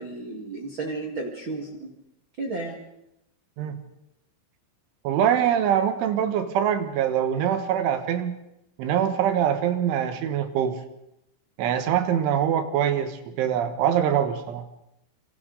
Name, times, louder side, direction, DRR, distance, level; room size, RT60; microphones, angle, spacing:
voice 1, 0.0-1.9 2.4-2.8, right 3 dB, 55° right, 0 dB, 1.3 m, -33 dB
voice 2, 5.1-8.4 8.8-10.8 11.6-14.7, right 9 dB, 90° right, 8 dB, 3.9 m, -24 dB
27.0 x 25.5 x 3.9 m, 0.83 s
omnidirectional pair, 5.3 m